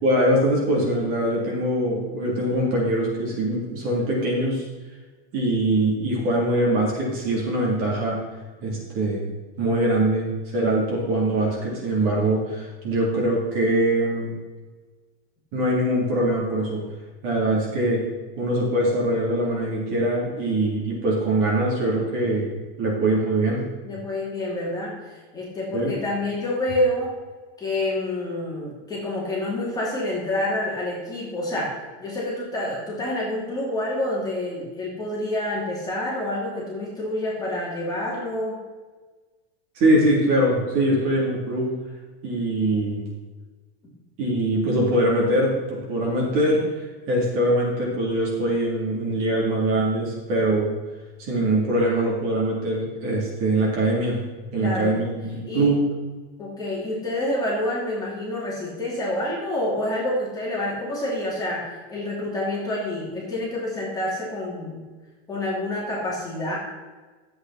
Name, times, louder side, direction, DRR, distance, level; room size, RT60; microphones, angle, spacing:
voice 1, 0.0-4.6 5.3-8.2 8.6-9.2 9.6-14.3 15.5-16.8 17.2-18.0 18.4-22.5 22.8-23.6 25.7-25.9 39.7-41.7 42.2-43.1 44.2-46.6 47.1-50.7 51.2-54.2 54.5-55.8, right 1 dB, 45° right, -3 dB, 3.4 m, -23 dB
voice 2, 23.8-27.1 27.6-38.6 54.6-55.0 55.5-55.7 56.4-64.8 65.3-66.6, left 1 dB, 10° left, -6 dB, 2.8 m, -28 dB
11.5 x 8.1 x 4.3 m, 1.3 s
supercardioid pair, 165°, 32 cm